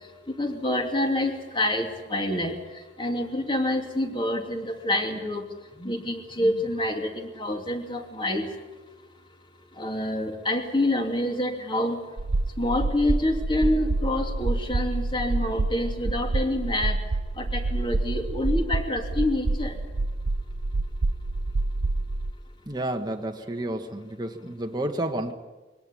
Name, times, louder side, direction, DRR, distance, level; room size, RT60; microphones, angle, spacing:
voice 1, 0.3-5.5 5.8-8.5 9.8-12.0 12.6-17.0 17.4-19.8, left 1 dB, 25° left, 3 dB, 3.0 m, -27 dB
sound 1, 12.2-22.3, right 2 dB, 85° right, 0.8 m, -27 dB
voice 2, 22.7-25.3, right 1 dB, 20° right, 3 dB, 1.5 m, -30 dB
22.5 x 18.0 x 9.9 m, 1.2 s
head